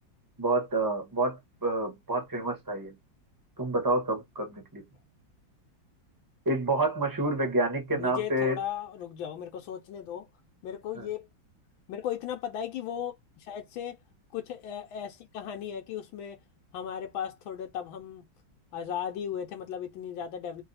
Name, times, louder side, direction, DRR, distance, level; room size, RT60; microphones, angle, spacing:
voice 1, 0.4-2.9 3.6-4.8 6.4-8.6 10.9-11.1, right 2 dB, 15° right, 1.0 m, -28 dB
voice 2, 7.9-10.3 10.6-11.3 11.9-14.0 14.3-16.4 16.7-18.2 18.7-20.6, left 9 dB, 85° left, 1.5 m, -36 dB
3.1 x 2.8 x 4.0 m
omnidirectional pair, 2.1 m